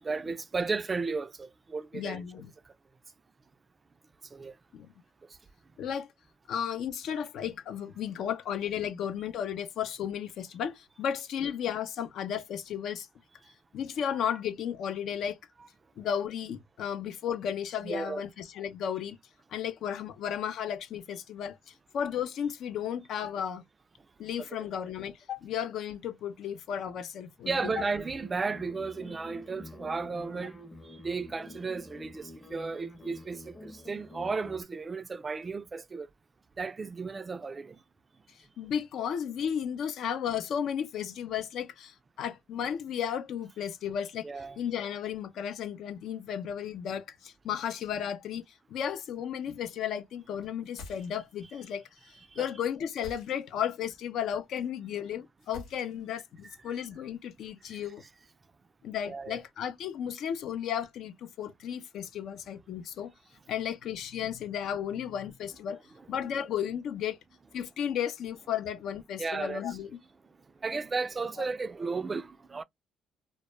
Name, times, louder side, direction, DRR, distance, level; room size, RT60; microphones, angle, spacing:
voice 1, 0.0-2.2 2.7-2.8 4.3-4.6 5.3-5.4 14.1-14.2 17.8-18.3 24.4-24.7 27.5-36.1 36.6-37.8 44.2-44.6 52.3-52.5 56.7-56.8 57.7-57.8 59.0-59.4 69.2-69.8 70.6-72.6, right 4 dB, 30° right, 0.3 m, -34 dB
voice 2, 1.9-2.5 4.7-4.9 5.8-6.1 6.5-13.1 13.7-15.4 16.0-19.2 19.5-23.6 24.2-27.7 38.6-44.3 44.6-48.4 48.7-58.0 58.8-63.1 63.5-65.8 66.1-67.2 67.5-69.9, left 9 dB, 70° left, 0.4 m, -34 dB
sound 1, 27.4-34.6, left 1 dB, 20° left, 0.7 m, -48 dB
sound 2, 50.6-51.5 52.9-53.7 55.4-56.2, left 3 dB, 85° left, 0.9 m, -48 dB
2.1 x 2.0 x 3.0 m
supercardioid pair, 70°, 0 cm